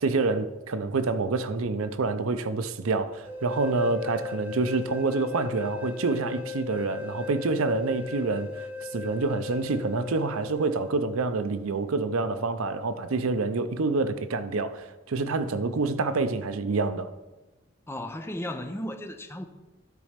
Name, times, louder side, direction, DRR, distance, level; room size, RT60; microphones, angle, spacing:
voice 1, 0.0-8.5 8.9-17.1, right 3 dB, 80° right, 0.6 m, -27 dB
sound 1, 3.3-10.9, left 5 dB, 10° right, 0.9 m, -37 dB
voice 2, 17.9-19.5, left 1 dB, 10° left, 0.5 m, -35 dB
12.0 x 4.2 x 5.0 m
head